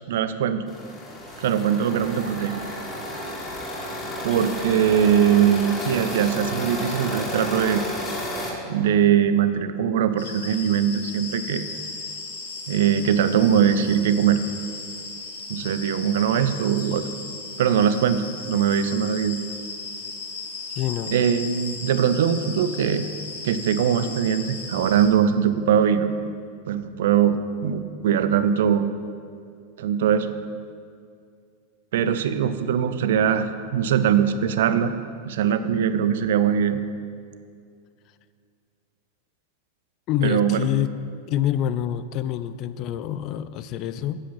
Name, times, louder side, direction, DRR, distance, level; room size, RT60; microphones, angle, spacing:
voice 1, 0.1-0.6 1.4-2.6 4.2-7.8 8.7-11.6 12.7-14.4 15.5-17.1 17.6-19.4 21.1-23.1 23.4-26.1 26.7-27.4 27.6-28.8 29.8-30.3 31.9-34.9 35.3-36.8 40.2-40.7, right 8 dB, 55° right, 11 dB, 0.6 m, -21 dB
sound 1, 0.7-8.5, left 1 dB, 20° left, 2.5 m, -32 dB
sound 2, 1.9-7.7, right 3 dB, 80° right, 1.0 m, -43 dB
sound 3, 10.2-25.1, left 4 dB, 65° left, 1.7 m, -36 dB
voice 2, 20.8-21.2 40.1-40.9 41.3-44.2, left 11 dB, 40° left, 14 dB, 0.5 m, -26 dB
9.7 x 8.4 x 5.9 m, 2.2 s
figure-of-eight pair, 90°, 0 cm